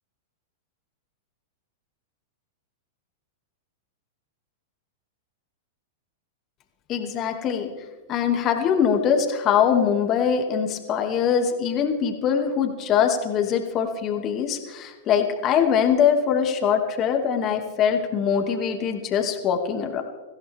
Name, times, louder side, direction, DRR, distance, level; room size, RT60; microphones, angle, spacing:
voice 1, 6.9-7.7 8.1-20.0, left 7 dB, 35° left, 4 dB, 2.4 m, -23 dB
22.0 x 15.5 x 3.6 m, 1.3 s
hypercardioid pair, 105°, 0 cm